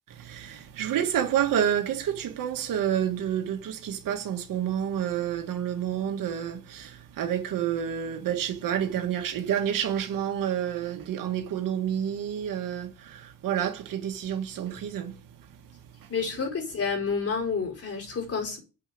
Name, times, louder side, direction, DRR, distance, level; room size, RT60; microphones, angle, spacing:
voice 1, 0.1-16.1, right 9 dB, 85° right, 2.1 m, -29 dB
voice 2, 16.1-18.6, left 5 dB, 45° left, 5.2 m, -29 dB
7.9 x 6.1 x 7.9 m
cardioid pair, 95°, 32 cm